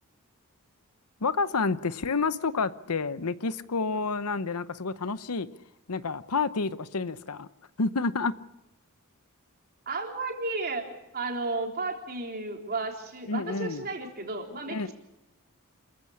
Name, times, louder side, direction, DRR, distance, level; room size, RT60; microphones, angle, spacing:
voice 1, 1.2-5.5 5.9-7.5 7.8-8.3 13.3-13.9 14.7-14.9, left 4 dB, 75° left, 0.8 m, -29 dB
voice 2, 9.9-10.8 11.1-14.9, right 3 dB, 45° right, 3.7 m, -33 dB
27.5 x 15.0 x 8.5 m
head